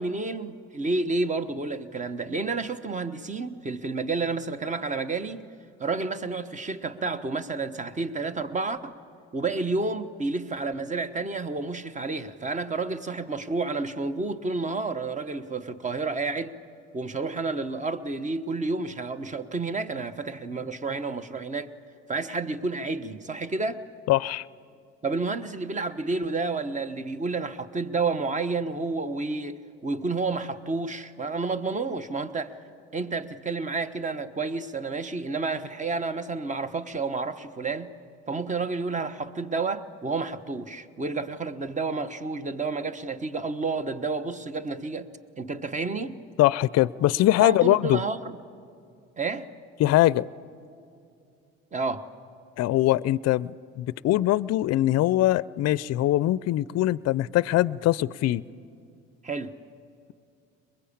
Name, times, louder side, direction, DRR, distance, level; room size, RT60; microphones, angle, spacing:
voice 1, 0.0-5.5 5.8-8.9 9.3-16.6 16.9-21.7 22.1-23.8 25.0-32.5 32.9-37.9 38.3-45.1 45.4-46.2 47.4-48.4 49.2-49.5 51.7-52.0 59.2-59.5, right 3 dB, 25° right, 1.2 m, -30 dB
voice 2, 24.1-24.4 46.4-48.0 49.8-50.3 52.6-58.4, left 15 dB, 55° left, 0.5 m, -22 dB
22.0 x 22.0 x 8.7 m
supercardioid pair, 75°, 31 cm